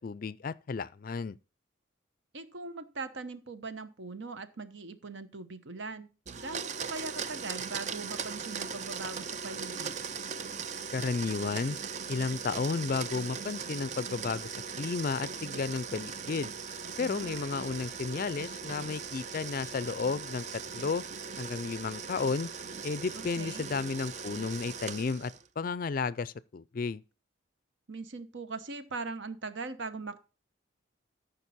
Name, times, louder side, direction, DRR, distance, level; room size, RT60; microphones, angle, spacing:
voice 1, 0.0-1.4 10.9-11.8 12.1-14.5 14.8-16.5 17.0-20.5 20.7-21.0 21.4-22.5 22.8-27.0, left 4 dB, 45° left, 0.4 m, -33 dB
voice 2, 2.3-10.0 16.8-17.4 23.1-23.7 27.9-30.2, right 3 dB, 70° right, 1.0 m, -41 dB
Domestic sounds home sounds, 6.3-25.5, right 6 dB, 35° right, 0.5 m, -39 dB
Piano, 17.2-23.0, right 4 dB, 85° right, 3.4 m, -55 dB
13.5 x 5.3 x 4.1 m
head